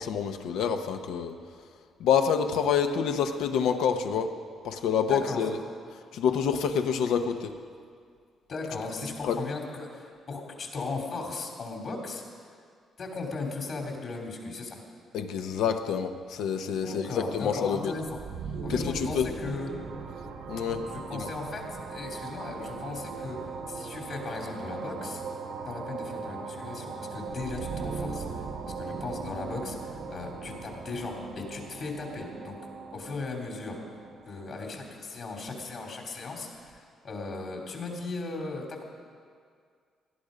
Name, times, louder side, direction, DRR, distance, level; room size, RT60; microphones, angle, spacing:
voice 1, 0.0-1.3 2.0-4.4 4.6-5.6 6.1-7.5 9.2-9.4 15.1-17.9 18.7-19.3 20.5-21.3, left 7 dB, 85° left, 7 dB, 0.9 m, -27 dB
voice 2, 5.1-5.4 8.5-12.2 13.0-14.8 16.8-18.2 18.6-19.7 20.8-21.6 21.9-23.4 23.7-25.2 25.6-28.2 28.6-32.6 32.9-33.8 34.3-38.8, left 3 dB, 55° left, 1 dB, 2.9 m, -37 dB
sound 1, 18.1-35.7, right 5 dB, 75° right, 1.2 m, -39 dB
17.5 x 12.0 x 5.1 m, 2.1 s
cardioid pair, 90°, 0 cm